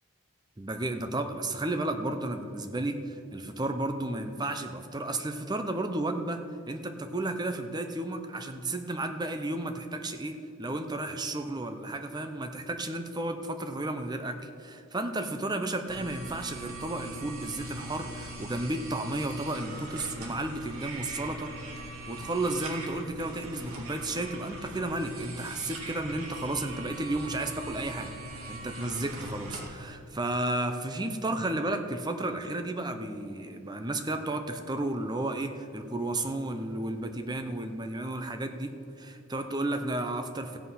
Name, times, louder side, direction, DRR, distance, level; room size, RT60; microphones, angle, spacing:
voice 1, 0.6-6.4 6.7-21.5 22.1-28.1 28.5-40.6, right 2 dB, 20° right, 7 dB, 0.7 m, -33 dB
sound 1, 15.9-29.7, right 1 dB, 75° right, 2.0 m, -41 dB
15.5 x 7.9 x 5.7 m, 2.5 s
head